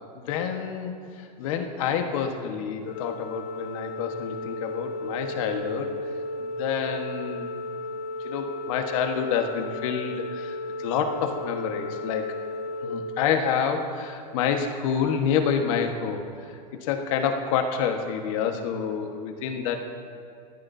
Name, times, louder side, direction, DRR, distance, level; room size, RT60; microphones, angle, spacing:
voice 1, 0.0-5.9 6.4-7.5 8.2-12.3 12.8-19.9, left 7 dB, 55° left, 5 dB, 1.4 m, -28 dB
Organ, 2.8-13.9, left 2 dB, 30° left, 0.4 m, -34 dB
19.5 x 16.0 x 2.7 m, 2.4 s
supercardioid pair, 155°, 21 cm